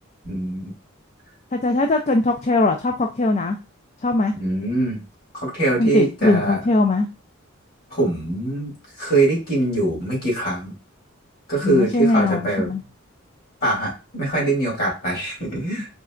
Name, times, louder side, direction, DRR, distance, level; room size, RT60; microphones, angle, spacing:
voice 1, 0.2-0.7 4.3-5.0 5.3-6.6 7.9-8.7 9.0-10.7 11.5-12.7 13.6-16.0, right 2 dB, 50° left, -2 dB, 2.3 m, -23 dB
voice 2, 1.5-3.6 4.0-4.3 5.8-7.1 11.6-12.8, left 2 dB, 35° left, 5 dB, 0.3 m, -20 dB
4.0 x 3.2 x 2.4 m, 0.30 s
head